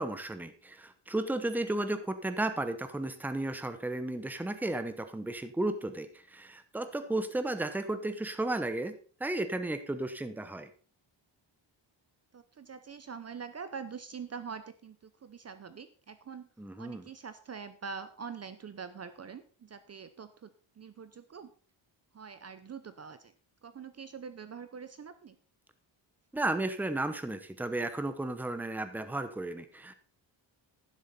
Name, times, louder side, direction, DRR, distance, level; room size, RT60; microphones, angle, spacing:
voice 1, 0.0-8.9 9.2-10.7 16.6-17.1 26.3-30.0, right 2 dB, 5° right, 9 dB, 0.8 m, -34 dB
voice 2, 12.3-16.5 16.8-21.5 22.1-23.3 23.6-25.4, right 6 dB, 35° right, 11 dB, 0.7 m, -44 dB
11.5 x 10.0 x 4.2 m, 0.40 s
wide cardioid pair, 170°, 46 cm